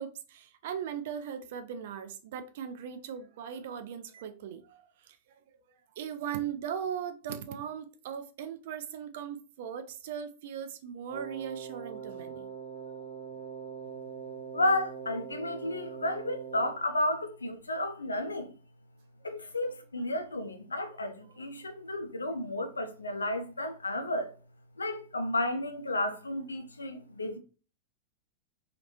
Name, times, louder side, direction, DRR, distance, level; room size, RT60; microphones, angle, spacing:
voice 1, 0.0-5.2 6.0-12.5 19.4-19.5 21.3-21.4, right 8 dB, 55° right, 0.4 m, -39 dB
Wind instrument woodwind instrument, 11.1-16.8, right 6 dB, 15° right, 1.0 m, -42 dB
voice 2, 14.5-18.5 19.2-24.3 24.8-27.4, left 1 dB, 75° left, 0.4 m, -32 dB
3.0 x 2.4 x 2.9 m
figure-of-eight pair, 90°, 0 cm